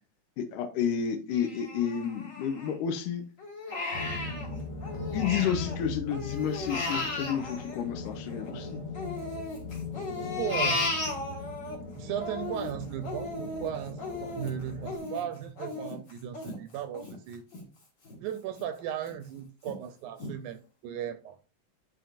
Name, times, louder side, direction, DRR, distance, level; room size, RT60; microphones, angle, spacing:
voice 1, 0.4-3.2 5.1-8.8, left 8 dB, 80° left, 2.4 m, -31 dB
Crying sobbing, 1.3-3.0 3.4-5.8 6.1-8.5 8.9-11.8 12.1-17.6 18.0-18.2 18.6-19.1 19.6-19.7 20.2-20.3, left 2 dB, 30° left, 1.6 m, -35 dB
sound 1, 3.9-15.0, left 3 dB, 50° left, 1.3 m, -40 dB
voice 2, 10.4-10.8 12.0-17.4 18.2-21.4, right 10 dB, 80° right, 2.0 m, -36 dB
12.0 x 4.4 x 2.5 m
omnidirectional pair, 3.7 m